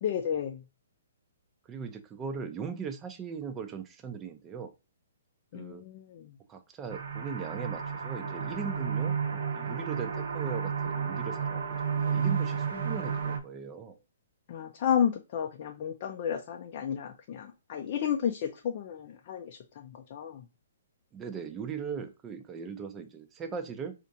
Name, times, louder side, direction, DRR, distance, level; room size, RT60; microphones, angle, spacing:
voice 1, 0.0-0.6 5.5-6.3 14.5-20.4, left 8 dB, 45° left, 2 dB, 0.5 m, -32 dB
voice 2, 1.6-4.7 5.5-5.8 6.5-14.0 21.1-23.9, right 6 dB, 20° right, 8 dB, 0.6 m, -39 dB
sound 1, 6.9-13.4, right 6 dB, 70° right, 0.8 m, -32 dB
4.3 x 2.5 x 2.6 m, 0.28 s
hypercardioid pair, 145°, 0 cm